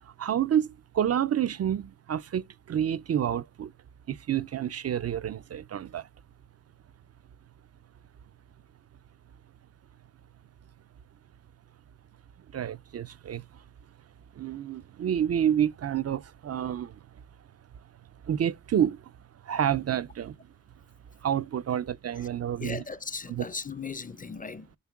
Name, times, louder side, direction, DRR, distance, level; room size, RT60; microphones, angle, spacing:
voice 1, 0.0-3.7 4.1-6.1 12.5-13.6 14.4-17.0 18.2-19.1 19.4-20.4 21.2-22.8 23.3-23.5, right 9 dB, 55° right, 0.4 m, -29 dB
voice 2, 22.6-24.8, left 4 dB, 30° left, 0.5 m, -37 dB
9.4 x 5.6 x 2.3 m
cardioid pair, 45°, 29 cm